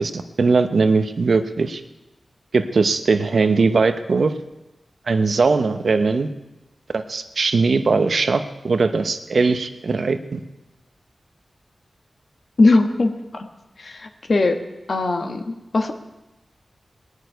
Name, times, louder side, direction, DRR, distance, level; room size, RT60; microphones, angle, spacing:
voice 1, 0.0-1.8 2.5-4.3 5.1-6.3 6.9-10.4, right 4 dB, 65° right, 9 dB, 0.9 m, -20 dB
voice 2, 12.6-13.5 13.8-14.6 14.9-15.9, left 3 dB, 55° left, 6 dB, 1.4 m, -20 dB
19.0 x 6.6 x 9.3 m, 1.0 s
wide cardioid pair, 90°, 0 cm